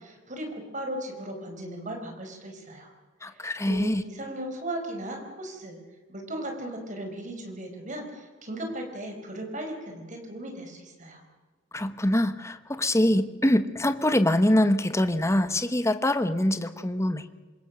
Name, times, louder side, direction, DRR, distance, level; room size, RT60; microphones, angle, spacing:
voice 1, 0.0-2.9 3.2-5.8 6.1-11.2, right 1 dB, 40° right, 4 dB, 4.6 m, -37 dB
voice 2, 3.2-4.0 11.7-17.2, left 1 dB, 15° left, 11 dB, 1.0 m, -24 dB
26.5 x 22.0 x 6.3 m, 1.4 s
head